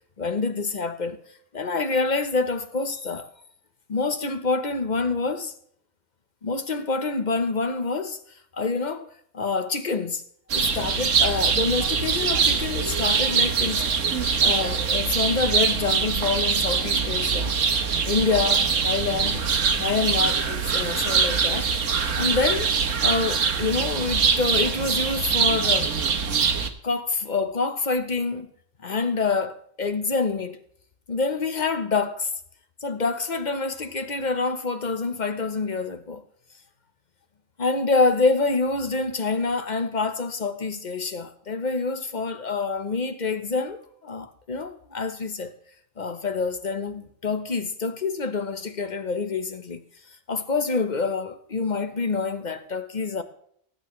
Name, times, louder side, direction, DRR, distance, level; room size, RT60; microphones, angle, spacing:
voice 1, 0.2-1.2 1.5-3.3 3.9-5.5 6.4-8.2 8.5-9.0 9.3-10.2 10.5-13.9 14.4-17.6 18.0-19.4 19.7-21.7 22.1-22.7 23.0-25.9 26.8-28.5 28.8-30.6 31.1-32.3 32.8-36.2 37.6-45.5 46.0-49.8 50.3-53.2, left 4 dB, 35° left, 1.0 m, -26 dB
sound 1, 10.5-26.7, right 5 dB, 70° right, 1.4 m, -23 dB
19.5 x 9.1 x 3.2 m
omnidirectional pair, 1.4 m